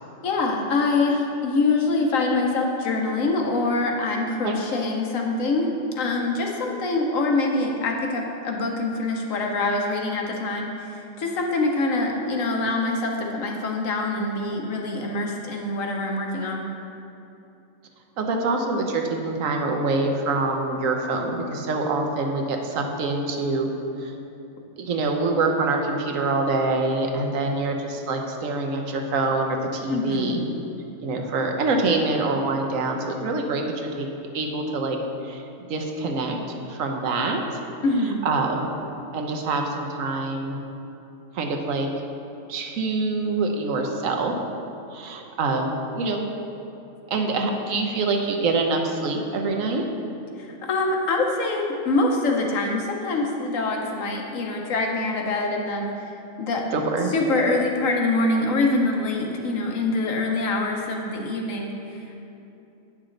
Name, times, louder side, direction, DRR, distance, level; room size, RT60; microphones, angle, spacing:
voice 1, 0.2-5.7 6.0-16.6 29.9-30.3 37.8-38.2 50.4-55.9 56.4-62.0, left 2 dB, 90° left, 1 dB, 1.3 m, -25 dB
voice 2, 18.2-23.7 24.0-24.1 24.8-30.4 31.0-34.1 34.3-35.0 35.2-35.4 35.7-36.4 36.6-37.6 38.2-38.7 39.1-40.6 41.3-41.9 42.5-44.3 44.9-46.3 47.1-49.8 56.7-57.1, right 3 dB, 85° right, 3 dB, 1.2 m, -25 dB
9.1 x 6.1 x 3.8 m, 2.8 s
omnidirectional pair, 1.3 m